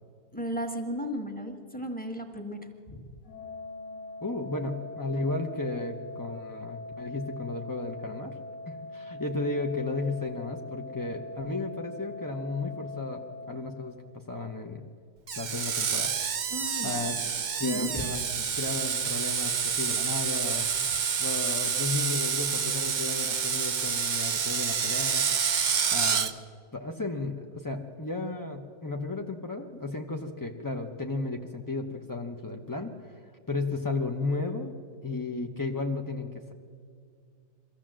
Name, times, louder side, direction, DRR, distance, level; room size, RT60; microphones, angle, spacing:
voice 1, 0.3-3.0 16.5-17.0 17.6-18.2, equal, 5° left, 3 dB, 1.5 m, -35 dB
Organ, 3.2-14.3, left 2 dB, 80° left, 2.4 m, -42 dB
voice 2, 4.2-8.4 8.7-13.2 13.5-14.8 15.4-16.1 16.8-17.2 17.6-18.2 18.5-20.6 21.2-25.3 25.9-26.3 26.7-33.2 33.5-34.7 35.0-36.5, left 3 dB, 25° left, 2 dB, 0.4 m, -34 dB
Screech, 15.3-26.3, right 7 dB, 70° right, 0.4 m, -28 dB
23.0 x 15.0 x 7.5 m, 2.2 s
omnidirectional pair, 1.8 m